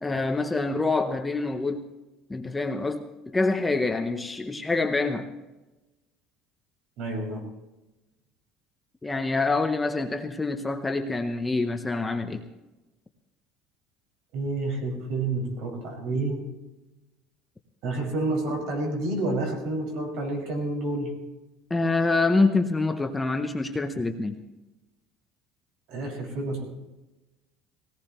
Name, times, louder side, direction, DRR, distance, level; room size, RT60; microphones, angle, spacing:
voice 1, 0.0-1.8 2.3-5.3 9.0-12.4 21.7-24.4, left 3 dB, 10° left, 6 dB, 0.7 m, -26 dB
voice 2, 7.0-7.4 14.3-16.4 17.8-21.1 25.9-26.6, right 2 dB, 55° right, 0 dB, 5.3 m, -29 dB
20.5 x 17.5 x 3.0 m, 1.1 s
cardioid pair, 175°, 0 cm